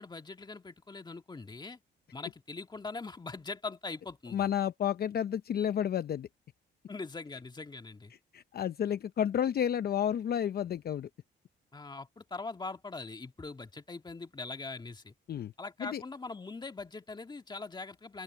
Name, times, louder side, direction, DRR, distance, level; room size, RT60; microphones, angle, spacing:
voice 1, 0.0-1.8 2.1-4.5 6.9-8.1 11.7-15.1 15.6-18.2, left 3 dB, 20° left, 1.8 m, -42 dB
voice 2, 4.3-6.3 8.3-11.1 15.3-15.5 15.8-16.0, left 9 dB, 50° left, 0.7 m, -31 dB
open air
cardioid pair, 90°, 20 cm